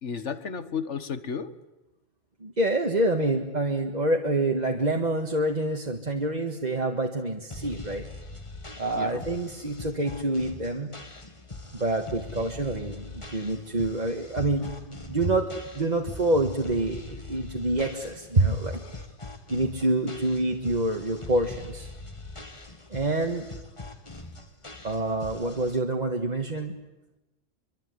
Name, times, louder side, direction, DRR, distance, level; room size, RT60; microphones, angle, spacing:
voice 1, 0.0-1.5 8.9-9.3 12.1-12.2 18.9-19.1, left 6 dB, 70° left, 13 dB, 1.8 m, -34 dB
voice 2, 2.4-8.1 8.8-10.9 11.7-18.8 19.5-21.9 22.9-23.5 24.8-26.8, right 2 dB, 35° right, 3 dB, 1.8 m, -27 dB
sound 1, 7.5-25.8, left 2 dB, 25° left, 2.0 m, -43 dB
24.5 x 24.0 x 9.6 m, 1.0 s
omnidirectional pair, 1.2 m